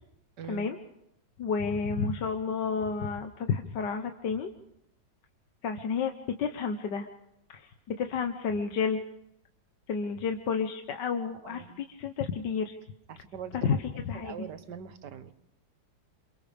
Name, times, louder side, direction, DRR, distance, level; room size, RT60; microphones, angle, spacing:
voice 1, 0.4-0.7 11.4-11.8 13.1-13.7 14.1-15.3, right 8 dB, 65° right, 11 dB, 1.6 m, -42 dB
voice 2, 1.4-4.5 5.6-7.1 7.5-9.0 9.9-12.8 13.5-14.5, left 5 dB, 65° left, 5 dB, 1.7 m, -31 dB
28.0 x 27.5 x 3.5 m, 0.78 s
omnidirectional pair, 2.0 m